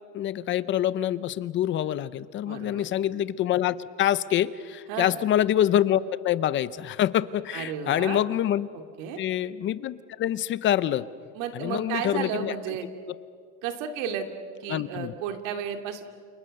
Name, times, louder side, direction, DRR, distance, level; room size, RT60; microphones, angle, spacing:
voice 1, 0.1-8.7 9.2-11.1 11.5-12.5 14.7-15.1, left 11 dB, 30° left, 17 dB, 0.6 m, -26 dB
voice 2, 2.5-2.9 4.9-5.1 7.5-8.2 9.0-9.2 11.3-12.9 13.6-14.3 14.6-16.0, right 8 dB, 80° right, 6 dB, 2.8 m, -33 dB
29.0 x 29.0 x 6.6 m, 2.2 s
cardioid pair, 170°, 39 cm